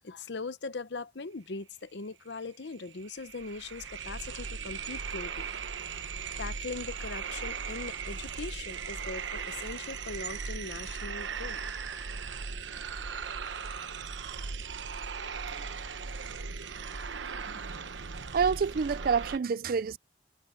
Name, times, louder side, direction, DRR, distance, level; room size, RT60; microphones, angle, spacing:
voice 1, 0.0-5.6 5.9-6.1 6.4-11.6, left 3 dB, 70° left, 0.8 m, -40 dB
sound 1, 2.4-2.5 2.7-19.4, right 5 dB, 85° right, 1.0 m, -38 dB
voice 2, 18.3-20.0, right 6 dB, 50° right, 0.4 m, -28 dB
head